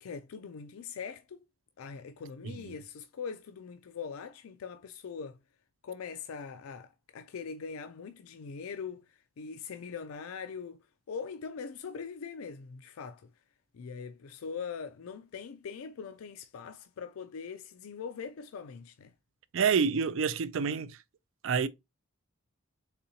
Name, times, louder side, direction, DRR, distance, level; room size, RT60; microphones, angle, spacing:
voice 1, 0.0-1.4 1.8-5.4 5.8-13.3 13.7-19.1, left 6 dB, 90° left, 0.4 m, -42 dB
voice 2, 19.5-21.0 21.4-21.7, right 6 dB, 70° right, 0.4 m, -27 dB
4.1 x 3.6 x 2.7 m
head